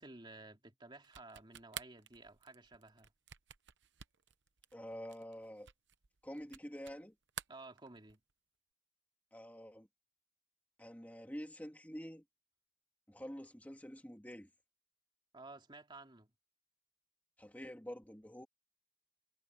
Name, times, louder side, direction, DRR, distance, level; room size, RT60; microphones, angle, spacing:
voice 1, 0.0-3.1 7.5-8.2 15.3-16.3, right 2 dB, 25° right, 2.6 m, -54 dB
sound 1, 1.0-7.0 7.3-8.3, right 10 dB, 65° right, 0.9 m, -51 dB
voice 2, 4.7-5.7 6.2-7.1 9.3-9.9 10.8-12.2 13.1-14.5 17.4-18.5, equal, 10° left, 2.1 m, -47 dB
head